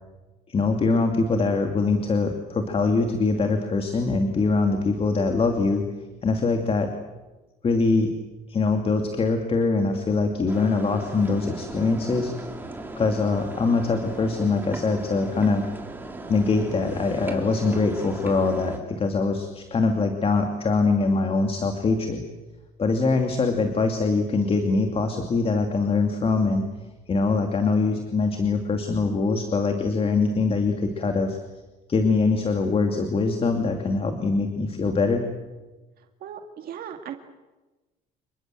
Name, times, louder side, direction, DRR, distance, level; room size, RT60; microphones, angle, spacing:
voice 1, 0.5-5.8 6.2-6.9 7.6-8.1 8.5-12.3 13.0-15.7 16.3-22.2 22.8-26.6 27.1-31.4 31.9-35.2, left 3 dB, 35° left, 5 dB, 2.7 m, -23 dB
sound 1, 10.5-18.8, right 2 dB, 10° right, 3.8 m, -37 dB
voice 2, 36.2-37.1, right 9 dB, 65° right, 5 dB, 2.1 m, -38 dB
28.0 x 22.0 x 7.8 m, 1.1 s
cardioid pair, 110°, 17 cm